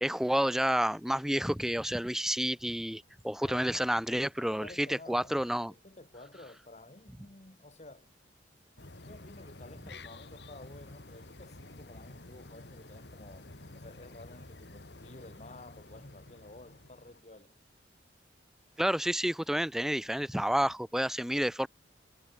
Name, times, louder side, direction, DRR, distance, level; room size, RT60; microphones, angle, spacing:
voice 1, 0.0-5.7 18.8-21.7, equal, 5° right, 0.5 m, -30 dB
voice 2, 3.4-3.7 4.1-5.4 5.7-8.1 9.0-17.5, left 2 dB, 40° left, 2.2 m, -52 dB
sound 1, 8.8-17.2, left 2 dB, 65° left, 2.2 m, -50 dB
head